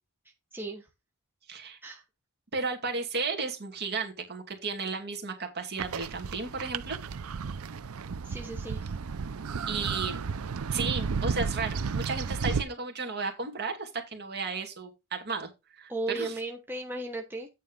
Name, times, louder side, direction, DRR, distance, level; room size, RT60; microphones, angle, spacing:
voice 1, 0.5-0.9 1.8-2.0 8.2-8.9 15.9-17.5, right 2 dB, 10° right, 1.1 m, -36 dB
voice 2, 1.5-1.8 2.5-7.0 9.7-10.2 10.7-16.3, right 4 dB, 50° right, 2.3 m, -34 dB
sound 1, 5.8-12.6, right 5 dB, 75° right, 0.5 m, -33 dB
9.1 x 4.1 x 5.4 m
head